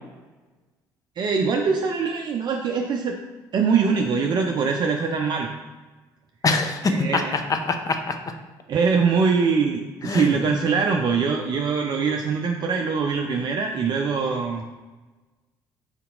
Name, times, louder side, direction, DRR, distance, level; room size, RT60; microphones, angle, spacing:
voice 1, 1.2-3.2 3.5-5.5 6.8-7.4 8.7-14.6, right 5 dB, 45° right, 2 dB, 0.5 m, -23 dB
voice 2, 6.4-8.2 10.0-10.3, left 3 dB, 35° left, 6 dB, 0.6 m, -24 dB
4.4 x 2.8 x 3.8 m, 1.2 s
hypercardioid pair, 60°, 10 cm